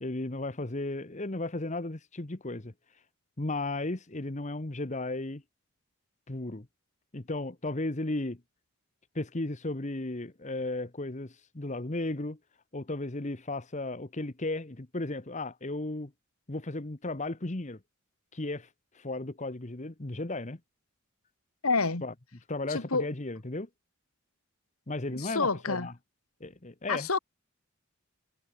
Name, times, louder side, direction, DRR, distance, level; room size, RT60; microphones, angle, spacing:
voice 1, 0.0-2.7 3.4-5.4 6.3-6.7 7.1-8.4 9.1-12.4 12.7-16.1 16.5-17.8 18.3-18.7 18.9-20.6 22.0-22.1 22.5-23.7 24.9-25.9 26.4-27.1, left 2 dB, 35° left, 1.2 m, -35 dB
voice 2, 21.6-22.0 22.7-23.1 25.1-25.9 26.9-27.2, left 4 dB, 85° left, 2.4 m, -28 dB
head